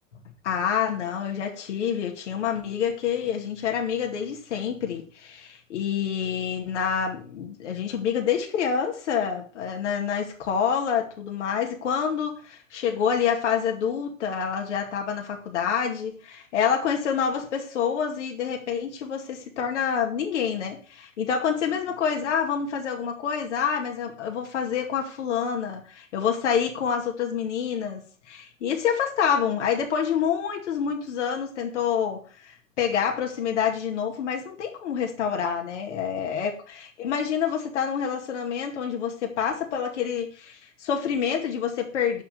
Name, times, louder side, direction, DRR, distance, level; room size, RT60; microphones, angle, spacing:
voice 1, 0.4-28.0 28.3-42.2, left 7 dB, 60° left, 2 dB, 2.2 m, -27 dB
11.5 x 4.6 x 7.8 m, 0.40 s
figure-of-eight pair, 95°, 40 cm